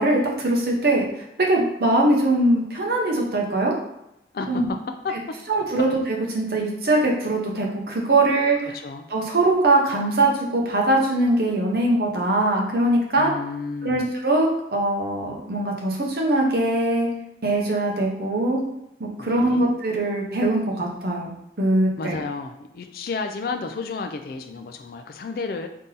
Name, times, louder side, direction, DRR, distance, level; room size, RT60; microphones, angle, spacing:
voice 1, 0.0-3.7 4.5-4.7 5.5-8.8 9.1-13.3 13.8-17.1 17.4-18.6 19.0-21.3 21.6-22.2, right 2 dB, 60° right, -1 dB, 0.8 m, -22 dB
voice 2, 13.2-14.1 19.2-19.6 22.0-25.7, left 4 dB, 55° left, 6 dB, 0.3 m, -31 dB
3.6 x 2.7 x 3.9 m, 0.85 s
head